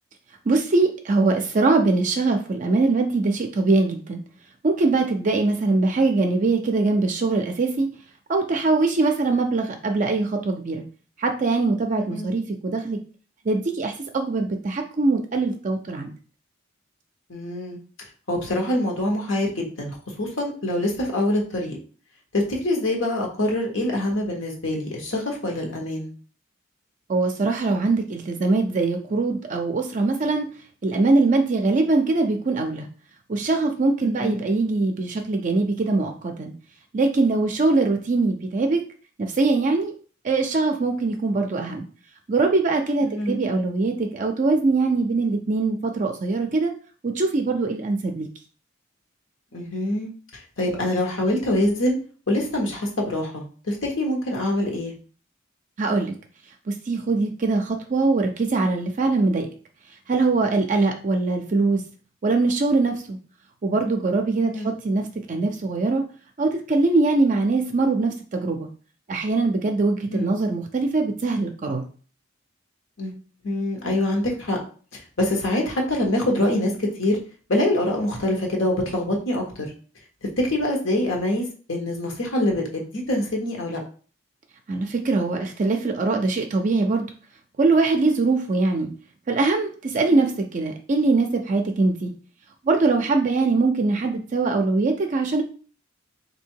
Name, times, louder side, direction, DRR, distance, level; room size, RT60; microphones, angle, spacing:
voice 1, 0.5-4.2 4.6-7.9 8.3-10.8 11.2-13.0 13.5-16.1 27.1-30.5 30.8-32.9 33.3-36.5 36.9-38.8 39.2-39.9 40.2-41.8 42.3-46.7 47.0-48.3 55.8-56.1 56.7-59.5 60.1-61.8 62.2-63.2 63.6-66.0 66.4-68.7 69.1-71.8 84.7-87.1 87.6-88.9 89.3-92.1 92.6-95.4, right 3 dB, 40° right, 4 dB, 0.4 m, -22 dB
voice 2, 12.0-12.3 17.3-17.8 18.3-21.8 22.3-26.1 34.0-34.4 43.0-43.4 49.5-52.0 52.3-54.9 64.4-64.7 70.1-70.3 73.0-73.1 73.4-74.6 74.9-77.2 77.5-79.6 80.4-83.8 90.1-90.3, left 1 dB, 80° left, 0 dB, 1.3 m, -25 dB
3.5 x 2.7 x 4.6 m, 0.40 s
head